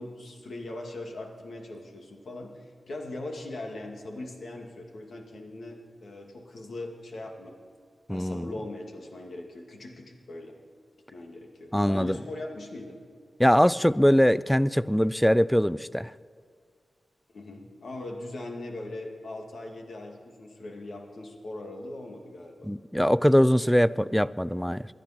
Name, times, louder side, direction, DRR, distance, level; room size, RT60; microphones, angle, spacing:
voice 1, 0.0-7.5 8.1-10.6 11.1-13.0 17.3-22.7, left 2 dB, 75° left, 1 dB, 2.2 m, -40 dB
voice 2, 8.1-8.5 11.7-12.2 13.4-16.1 22.6-24.9, equal, 5° left, 18 dB, 0.3 m, -22 dB
21.0 x 12.0 x 4.4 m, 2.1 s
wide cardioid pair, 95°, 0 cm